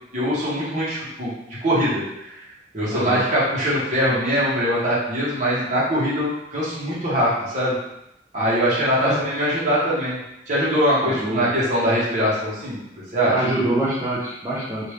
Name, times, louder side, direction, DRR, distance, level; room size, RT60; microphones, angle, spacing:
voice 1, 0.1-1.3 1.6-2.4 2.7-7.7 8.3-10.2 10.5-12.8 13.1-13.3, equal, 45° right, -9 dB, 1.1 m, -22 dB
voice 2, 2.9-3.2 9.0-9.2 11.0-11.5 13.3-14.9, right 1 dB, 15° right, -8 dB, 0.5 m, -25 dB
3.3 x 2.6 x 3.1 m, 0.86 s
head